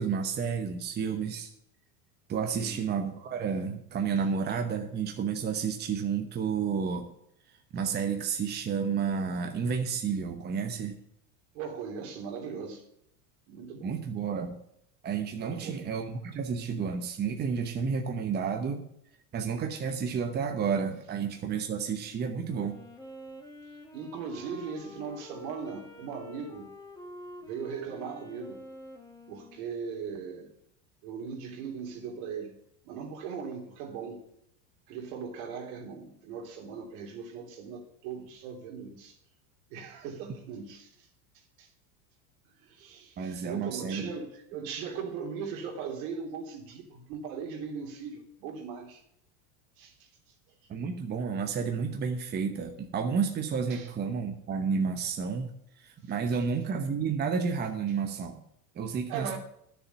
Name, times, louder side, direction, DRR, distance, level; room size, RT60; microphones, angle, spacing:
voice 1, 0.0-1.5 2.3-7.1 7.7-11.0 13.8-14.6 15.0-18.9 19.3-22.8 43.2-44.1 50.7-55.5 55.8-58.4 58.7-59.4, right 6 dB, 20° right, 5 dB, 1.0 m, -31 dB
voice 2, 2.4-2.8 4.2-4.3 11.5-12.8 13.5-14.0 15.3-15.8 23.9-26.7 27.5-28.6 29.3-30.5 31.0-32.5 32.8-34.2 34.9-39.2 39.7-41.1 41.6-41.7 42.6-49.0 49.8-50.1 53.7-53.9 56.3-56.4 59.1-59.4, right 6 dB, 65° right, 2 dB, 3.3 m, -39 dB
Wind instrument woodwind instrument, 22.5-30.2, left 1 dB, 10° left, 1.7 m, -48 dB
10.5 x 7.0 x 7.2 m, 0.73 s
supercardioid pair, 135°, 44 cm